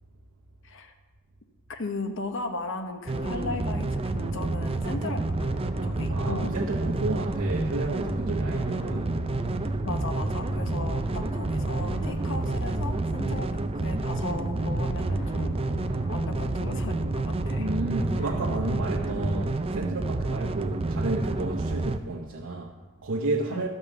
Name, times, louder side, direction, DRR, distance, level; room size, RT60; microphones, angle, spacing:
voice 1, 1.7-6.5 9.8-15.6 16.1-17.7 23.5-23.6, left 3 dB, 65° left, 1.1 m, -36 dB
sound 1, 3.1-22.0, right 2 dB, 30° right, 0.5 m, -29 dB
sound 2, 5.2-19.4, left 1 dB, 30° left, 4.0 m, -38 dB
voice 2, 6.1-9.2 10.7-11.3 17.6-23.7, right 2 dB, 85° right, 1.0 m, -31 dB
12.0 x 5.4 x 7.1 m
head